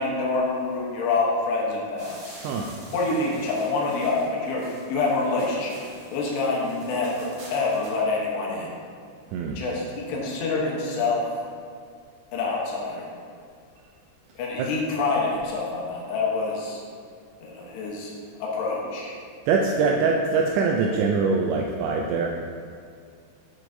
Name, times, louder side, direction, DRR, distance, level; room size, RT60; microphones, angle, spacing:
voice 1, 0.0-2.4 2.9-5.8 6.1-8.8 9.6-11.3 12.3-13.1 14.4-16.8 17.4-18.1 18.4-19.1 19.8-19.9, left 3 dB, 75° left, -3 dB, 2.9 m, -26 dB
sound 1, 2.0-8.0, right 1 dB, 55° right, 3.4 m, -47 dB
voice 2, 19.5-22.3, right 4 dB, 85° right, 0 dB, 2.4 m, -23 dB
11.5 x 4.7 x 2.6 m, 2.2 s
omnidirectional pair, 5.4 m